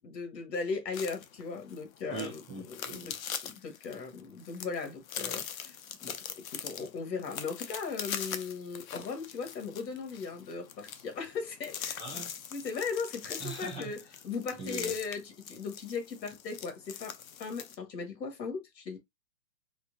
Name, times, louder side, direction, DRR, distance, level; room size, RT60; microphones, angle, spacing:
voice 1, 0.0-3.1 3.4-12.0 12.5-19.0, left 5 dB, 80° left, 1.7 m, -38 dB
sound 1, 0.9-17.7, left 8 dB, 55° left, 0.7 m, -42 dB
voice 2, 2.1-3.1 12.0-12.3 13.4-13.9 14.6-14.9, right 4 dB, ahead, 0.6 m, -41 dB
4.4 x 2.6 x 2.6 m
hypercardioid pair, 170°, 50 cm